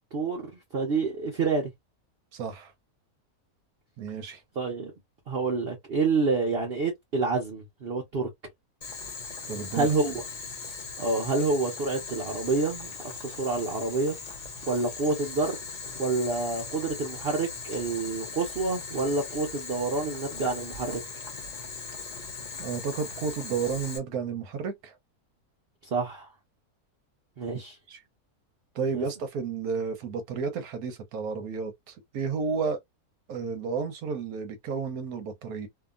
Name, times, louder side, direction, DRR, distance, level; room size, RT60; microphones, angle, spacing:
voice 1, 0.1-1.7 4.6-4.9 5.3-8.3 9.7-10.2 11.0-14.2 14.6-15.6 16.0-21.0 25.8-26.3 27.4-27.8 28.9-29.0, right 3 dB, 45° right, 0.9 m, -28 dB
voice 2, 2.3-2.7 4.0-4.4 9.5-9.9 22.6-24.9 27.9-28.0 28.7-32.8 33.3-35.7, right 5 dB, 75° right, 1.2 m, -32 dB
Boiling, 8.8-24.0, left 4 dB, 40° left, 0.6 m, -39 dB
2.8 x 2.4 x 2.4 m
omnidirectional pair, 1.6 m